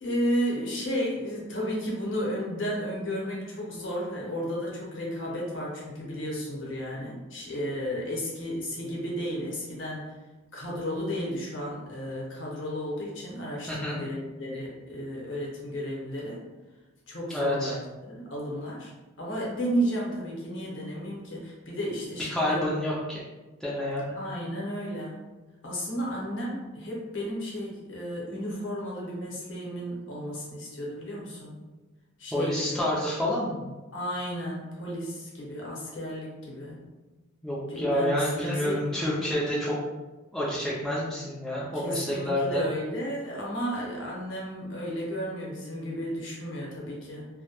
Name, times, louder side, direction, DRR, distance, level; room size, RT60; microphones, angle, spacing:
voice 1, 0.0-10.1 10.5-16.4 17.1-18.9 19.2-22.6 24.2-25.2 25.6-31.6 32.2-32.8 33.9-36.8 37.7-38.9 41.7-47.3, equal, 60° left, -4 dB, 0.8 m, -33 dB
voice 2, 13.7-14.0 17.3-17.7 22.3-23.2 23.6-24.1 32.3-33.7 37.4-39.8 40.3-42.6, left 1 dB, ahead, -7 dB, 0.3 m, -28 dB
2.1 x 2.1 x 2.8 m, 1.2 s
head